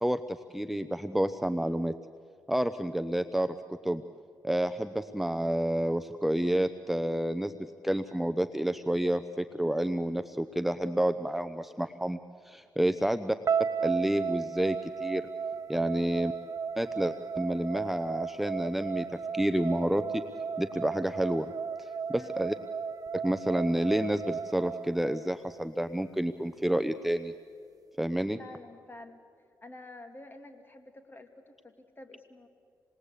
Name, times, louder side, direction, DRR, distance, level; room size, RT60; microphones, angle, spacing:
voice 1, 0.0-1.9 2.5-4.0 4.4-7.5 7.8-12.2 12.4-13.4 13.8-15.2 15.7-16.3 16.8-19.1 19.3-20.2 20.6-21.5 21.8-22.6 23.1-27.3 28.0-28.4, right 1 dB, 5° right, 10 dB, 0.8 m, -29 dB
sound 1, 13.5-25.6, right 6 dB, 50° right, 1.0 m, -35 dB
voice 2, 28.4-29.2 29.6-32.5, left 2 dB, 25° left, 6 dB, 2.7 m, -49 dB
28.0 x 20.0 x 8.3 m, 2.3 s
cardioid pair, 70°, 8 cm